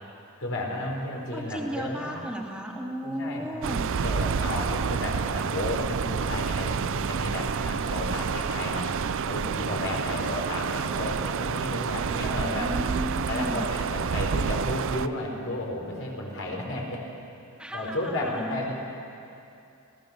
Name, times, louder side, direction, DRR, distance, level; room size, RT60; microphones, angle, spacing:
voice 1, 0.4-2.2 3.0-3.7 4.0-8.9 9.3-12.7 13.3-17.0 17.7-18.7, left 1 dB, 65° left, -1 dB, 4.4 m, -33 dB
voice 2, 1.2-3.8 10.0-10.4 12.2-13.6 17.6-18.6, equal, 5° right, -1 dB, 2.5 m, -35 dB
sound 1, 3.6-15.1, right 6 dB, 65° right, 0.5 m, -29 dB
29.0 x 16.5 x 6.8 m, 2.7 s
head